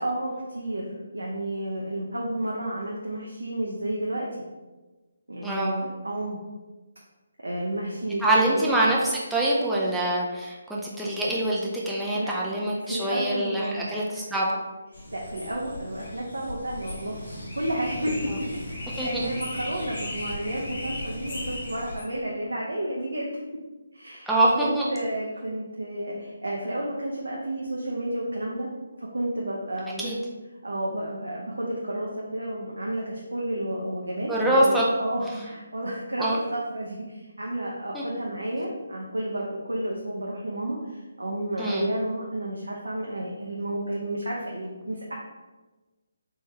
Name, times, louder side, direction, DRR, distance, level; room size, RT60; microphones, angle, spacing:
voice 1, 0.0-4.4 5.3-6.4 7.4-8.6 12.1-12.6 12.8-14.0 14.9-23.3 23.9-28.7 29.0-30.1 30.6-45.2, right 1 dB, 80° right, -3 dB, 0.6 m, -31 dB
voice 2, 5.4-5.7 8.2-14.5 19.0-19.3 24.3-24.8 30.0-30.1 34.3-34.9 36.2-36.4 37.9-38.0 41.6-41.9, right 1 dB, ahead, -7 dB, 0.4 m, -24 dB
sound 1, 14.9-22.0, left 1 dB, 65° left, 1.4 m, -36 dB
3.6 x 3.1 x 2.7 m, 1.2 s
figure-of-eight pair, 150°, 0 cm